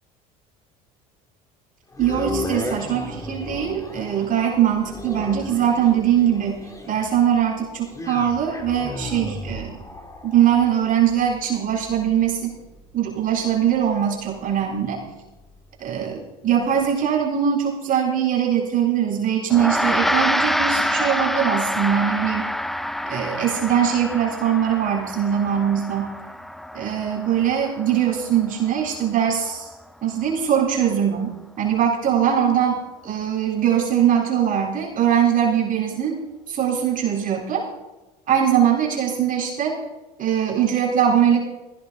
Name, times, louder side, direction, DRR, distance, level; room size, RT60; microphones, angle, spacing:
sound 1, 1.9-16.1 16.6-16.7, left 1 dB, 15° left, 3.0 m, -36 dB
voice 1, 2.0-9.8 10.2-12.6 12.9-15.0 15.8-22.4 23.0-26.1 26.7-29.7 30.0-36.2 36.5-37.7 38.3-39.7 40.2-41.5, right 9 dB, 50° right, -2 dB, 4.1 m, -21 dB
Gong, 19.5-29.1, equal, ahead, 0.6 m, -26 dB
16.0 x 15.0 x 4.1 m, 1.1 s
hypercardioid pair, 85°, 19 cm